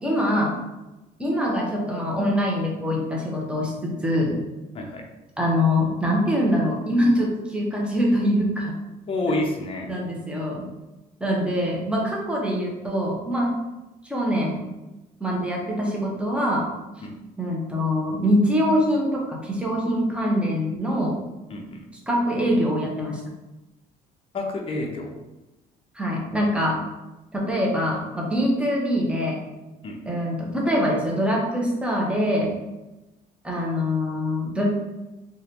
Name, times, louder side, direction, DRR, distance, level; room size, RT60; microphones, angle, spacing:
voice 1, 0.0-0.5 1.2-4.3 5.4-8.8 9.9-10.7 11.2-13.5 14.1-14.6 15.2-16.6 17.4-21.1 22.1-23.2 25.9-26.8 27.3-29.4 30.0-32.5 33.4-34.6, equal, 5° right, -3 dB, 0.8 m, -24 dB
voice 2, 9.1-9.9 17.0-17.2 21.5-21.9 24.3-25.1 29.8-30.0, left 2 dB, 35° left, 1 dB, 0.6 m, -28 dB
3.2 x 2.5 x 2.8 m, 1.0 s
cardioid pair, 110°, 17 cm